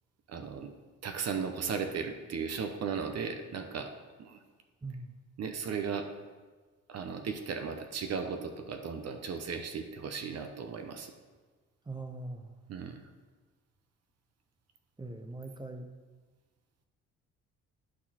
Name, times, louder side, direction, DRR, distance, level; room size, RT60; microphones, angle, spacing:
voice 1, 0.3-0.7 1.0-3.9 4.2-4.4 5.4-6.1 6.9-11.1 12.7-13.0, right 6 dB, 55° right, 6 dB, 0.8 m, -36 dB
voice 2, 4.8-5.1 11.9-12.5 15.0-15.9, right 2 dB, 15° right, 6 dB, 0.5 m, -41 dB
11.5 x 4.2 x 4.2 m, 1.4 s
cardioid pair, 90°, 30 cm